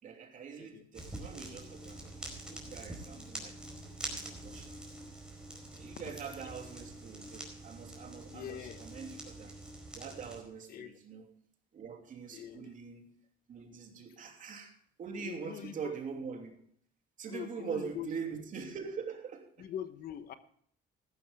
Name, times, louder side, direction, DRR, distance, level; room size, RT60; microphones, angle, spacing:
voice 1, 0.0-3.6 4.1-4.8 5.8-9.5 9.9-11.3 11.7-13.1 13.5-16.6 17.2-19.7, right 6 dB, 50° right, 3.0 m, -43 dB
sound 1, 0.9-10.4, right 1 dB, 5° right, 4.7 m, -45 dB
voice 2, 8.3-8.9 10.7-11.0 12.3-12.7 15.2-15.9 17.3-18.2 19.6-20.3, left 10 dB, 60° left, 1.2 m, -43 dB
14.5 x 12.5 x 3.6 m
cardioid pair, 110°, 17 cm